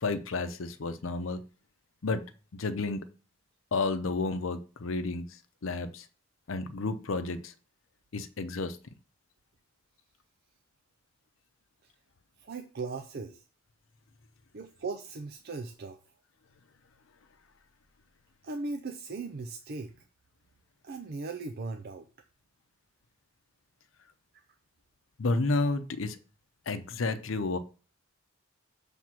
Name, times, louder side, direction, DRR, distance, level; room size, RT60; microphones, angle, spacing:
voice 1, 0.0-1.4 2.0-2.2 2.5-3.1 3.7-5.3 5.6-6.0 6.5-7.5 8.1-8.8 25.2-26.2 26.7-27.6, left 3 dB, 85° left, 10 dB, 0.7 m, -31 dB
voice 2, 12.4-13.4 14.5-16.0 18.4-19.9 20.8-22.1, right 3 dB, 55° right, 6 dB, 0.5 m, -38 dB
6.1 x 3.5 x 5.8 m, 0.36 s
head